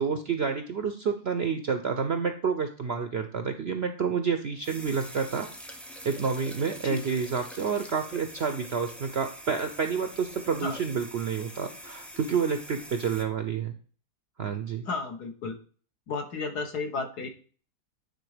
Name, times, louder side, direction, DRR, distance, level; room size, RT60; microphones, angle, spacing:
voice 1, 0.0-5.5 6.0-13.7 14.4-14.9, right 6 dB, 60° right, 7 dB, 0.6 m, -29 dB
sound 1, 4.6-13.2, right 1 dB, ahead, 0.4 m, -44 dB
voice 2, 14.9-15.6 16.1-17.3, left 4 dB, 70° left, 5 dB, 1.8 m, -33 dB
9.2 x 4.0 x 4.9 m, 0.41 s
omnidirectional pair, 1.8 m